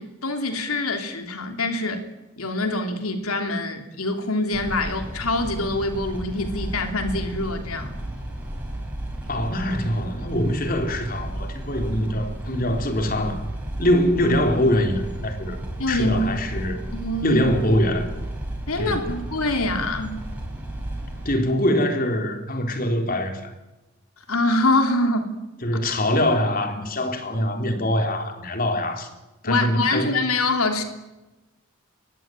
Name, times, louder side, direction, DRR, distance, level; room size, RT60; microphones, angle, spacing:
voice 1, 0.0-2.0 2.4-7.9 15.8-16.2 16.9-17.5 18.7-20.2 24.3-25.3 29.4-30.8, left 2 dB, 90° left, 3.4 m, -24 dB
sound 1, 4.5-21.3, right 1 dB, 5° right, 7.7 m, -33 dB
voice 2, 9.3-13.4 13.8-15.6 15.9-16.8 17.2-18.2 18.8-19.1 21.3-23.5 25.6-29.1 29.4-30.2, left 1 dB, 40° left, 3.7 m, -23 dB
25.0 x 22.5 x 9.3 m
head